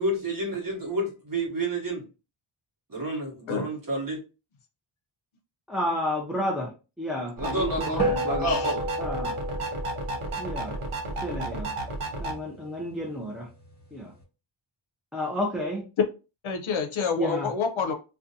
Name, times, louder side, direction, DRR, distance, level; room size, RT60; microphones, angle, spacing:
voice 1, 0.0-2.0 2.9-4.2 7.4-8.8, right 1 dB, 40° right, 0 dB, 1.0 m, -29 dB
voice 2, 5.7-8.5 9.0-9.4 10.4-10.7 11.2-11.7 12.2-13.5 13.9-14.1 15.1-15.9 17.2-17.5, left 1 dB, ahead, -2 dB, 0.4 m, -31 dB
sound 1, 7.4-12.3, right 2 dB, 85° right, 0.7 m, -32 dB
sound 2, 8.0-12.6, right 1 dB, 30° left, 1.1 m, -33 dB
voice 3, 8.4-8.7 16.4-17.9, left 5 dB, 70° left, 6 dB, 0.6 m, -28 dB
2.5 x 2.2 x 2.6 m, 0.31 s
wide cardioid pair, 100°, 49 cm